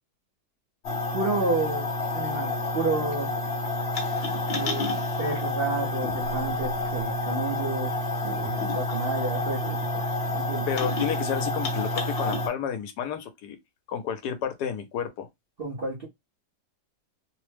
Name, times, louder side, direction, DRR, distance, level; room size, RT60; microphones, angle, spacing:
sound 1, 0.8-12.5, left 2 dB, 45° left, 0.8 m, -29 dB
voice 1, 1.1-1.9 2.1-3.3 4.5-4.9 5.2-7.9 8.2-10.7 15.6-16.0, right 3 dB, 50° right, 0.7 m, -30 dB
voice 2, 10.7-13.6 13.9-15.3, left 8 dB, 75° left, 1.2 m, -31 dB
3.0 x 2.0 x 3.2 m
omnidirectional pair, 1.8 m